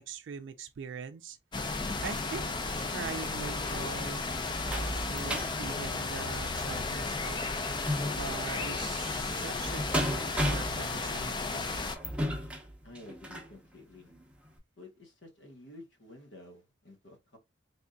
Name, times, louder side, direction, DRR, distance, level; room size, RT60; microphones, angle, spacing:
voice 1, 0.0-1.4 2.0-4.3 4.9-7.4 8.2-12.0, right 5 dB, 75° right, 0.4 m, -42 dB
sound 1, 1.5-12.0, left 3 dB, 25° left, 0.4 m, -34 dB
sound 2, 3.7-13.5 14.1-14.2 14.6-14.7, equal, 5° right, 0.8 m, -36 dB
voice 2, 12.8-14.1 14.8-17.4, left 2 dB, 75° left, 1.1 m, -51 dB
3.8 x 3.5 x 2.2 m
head